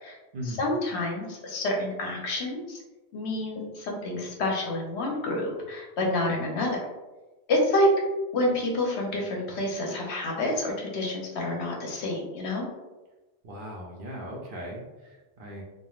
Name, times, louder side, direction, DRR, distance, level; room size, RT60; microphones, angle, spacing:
voice 1, 0.4-2.8 3.1-6.8 7.5-7.9 8.3-12.7, left 1 dB, 75° left, -1 dB, 0.9 m, -28 dB
voice 2, 13.4-15.6, equal, 60° right, -2 dB, 0.7 m, -38 dB
3.1 x 2.2 x 2.3 m, 1.1 s
omnidirectional pair, 1.1 m